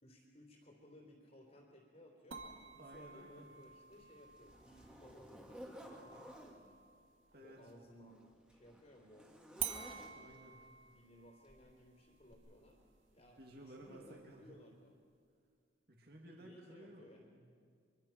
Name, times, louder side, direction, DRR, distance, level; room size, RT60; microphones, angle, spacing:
voice 1, 0.0-2.4 2.7-6.8 7.4-9.3 10.9-12.8 13.1-15.0 16.3-17.3, left 1 dB, 35° left, -1 dB, 3.3 m, -60 dB
sound 1, 2.3-7.9 9.6-14.6, right 9 dB, 90° right, 2.2 m, -50 dB
voice 2, 2.8-3.5 7.3-7.7 10.1-10.6 13.4-14.5 15.9-17.5, right 1 dB, 50° right, 0 dB, 2.6 m, -56 dB
Zipper (clothing), 2.9-3.0 3.6-6.6 7.5-10.5 11.5-11.7 12.3-12.4, equal, 5° right, 2.2 m, -55 dB
24.5 x 24.0 x 5.9 m, 2.1 s
head